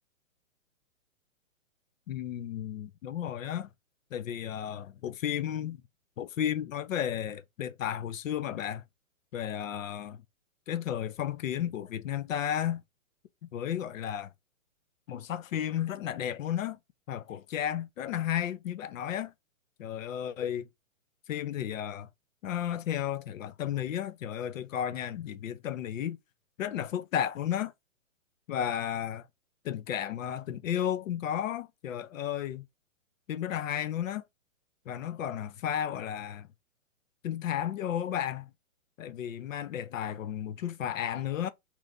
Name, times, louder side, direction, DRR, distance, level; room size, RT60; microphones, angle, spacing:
voice 1, 2.1-3.7 4.1-5.8 6.2-8.8 9.3-10.2 10.7-12.8 13.5-14.3 15.1-16.8 17.1-19.3 19.8-20.7 21.3-22.1 22.4-26.2 26.6-27.7 28.5-29.3 29.6-32.6 33.3-34.2 34.9-36.5 37.2-38.5 39.0-41.5, left 10 dB, 70° left, 0.6 m, -33 dB
2.9 x 2.6 x 3.5 m
hypercardioid pair, 165°, 40 cm